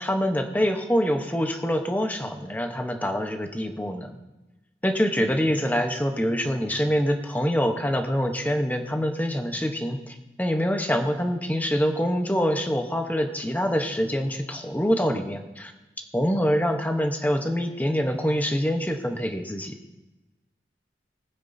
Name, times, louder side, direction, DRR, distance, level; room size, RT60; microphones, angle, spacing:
voice 1, 0.0-4.1 4.8-15.7 16.1-19.8, equal, 10° left, 5 dB, 0.9 m, -25 dB
20.0 x 9.7 x 2.7 m, 1.1 s
head